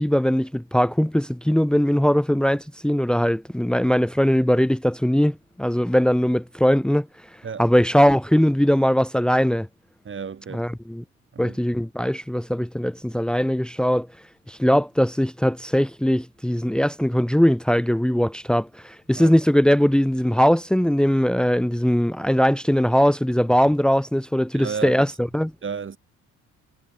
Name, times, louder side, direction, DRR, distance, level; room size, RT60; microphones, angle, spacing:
voice 1, 0.0-7.1 7.6-9.7 10.5-11.0 11.4-14.1 14.5-25.1 25.3-25.5, equal, 5° left, 1.9 m, -20 dB
voice 2, 10.0-10.6 11.3-11.6 19.1-19.3 24.5-25.1 25.6-26.0, right 6 dB, 40° right, 3.6 m, -32 dB
cardioid pair, 90°, 30 cm